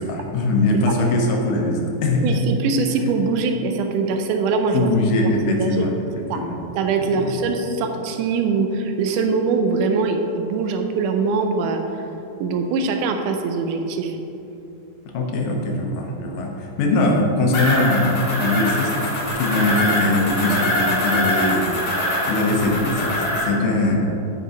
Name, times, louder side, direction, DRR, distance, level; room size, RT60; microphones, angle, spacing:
voice 1, 0.0-2.4 3.0-3.1 4.7-6.6 7.1-7.4 15.1-18.9 19.4-21.7 22.0-24.0, left 2 dB, 85° left, 1 dB, 2.6 m, -21 dB
voice 2, 2.2-4.9 5.5-5.8 6.3-6.4 6.8-11.8 12.4-14.2, right 4 dB, 85° right, 5 dB, 2.2 m, -22 dB
sound 1, 17.5-23.4, left 1 dB, 45° left, 2.1 m, -23 dB
8.0 x 5.5 x 4.7 m, 2.8 s
omnidirectional pair, 3.6 m